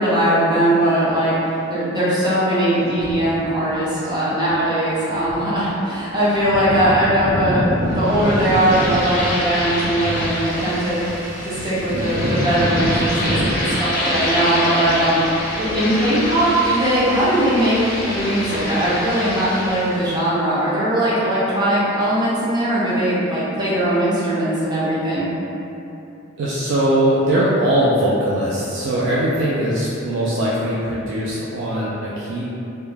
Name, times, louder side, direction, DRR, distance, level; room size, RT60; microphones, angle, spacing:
voice 1, 0.0-11.0 11.4-15.2 15.5-17.8 18.1-25.3, right 1 dB, 20° right, -9 dB, 0.5 m, -20 dB
sound 1, 3.0-3.4 4.5-4.6 5.2-5.6 5.9-6.0 6.2-13.6, equal, 90° right, 0.9 m, -25 dB
sound 2, 7.9-20.1, left 1 dB, 40° left, 0.4 m, -27 dB
voice 2, 26.4-32.4, right 1 dB, 75° right, -8 dB, 0.3 m, -20 dB
2.2 x 2.1 x 3.1 m, 2.9 s
head